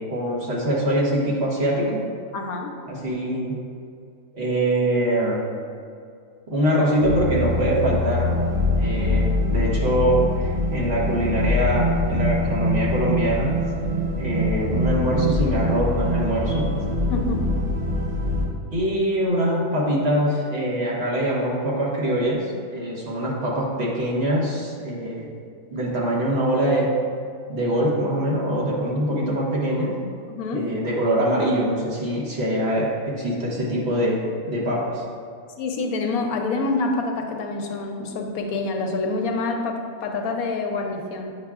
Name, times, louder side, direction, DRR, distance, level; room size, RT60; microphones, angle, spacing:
voice 1, 0.0-2.0 2.9-3.6 4.3-5.4 6.5-8.3 8.8-13.5 14.2-16.7 18.7-25.3 25.7-26.9 27.5-29.9 30.5-34.2 34.5-35.0, right 1 dB, 50° right, -5 dB, 1.4 m, -23 dB
voice 2, 2.3-2.7 17.1-17.4 30.3-30.7 35.6-41.4, left 3 dB, 75° left, 3 dB, 1.1 m, -27 dB
sound 1, 7.0-18.5, left 1 dB, 25° right, 1.4 m, -23 dB
8.4 x 5.7 x 2.4 m, 2.3 s
omnidirectional pair, 1.5 m